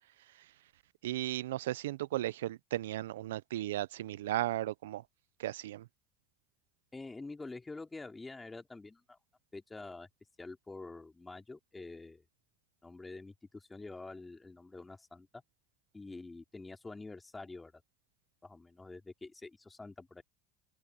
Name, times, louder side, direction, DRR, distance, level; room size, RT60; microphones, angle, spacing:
voice 1, 1.0-5.0 5.4-5.9, right 14 dB, 90° right, 0.4 m, -35 dB
voice 2, 6.9-9.2 9.5-10.1 10.4-12.2 12.8-15.4 15.9-17.7 18.4-20.2, left 3 dB, 15° left, 3.3 m, -47 dB
hypercardioid pair, 85°, 0 cm